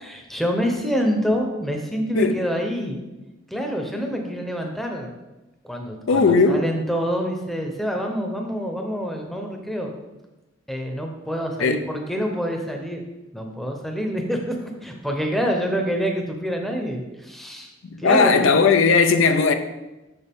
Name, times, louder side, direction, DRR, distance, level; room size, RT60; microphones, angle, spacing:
voice 1, 0.0-3.0 3.5-5.1 5.6-9.9 10.7-13.0 13.3-17.7 18.0-18.6, equal, ahead, 0.8 m, -26 dB
voice 2, 6.1-6.7 11.6-11.8 17.9-19.5, left 4 dB, 70° left, 0.5 m, -17 dB
6.8 x 6.5 x 3.6 m
head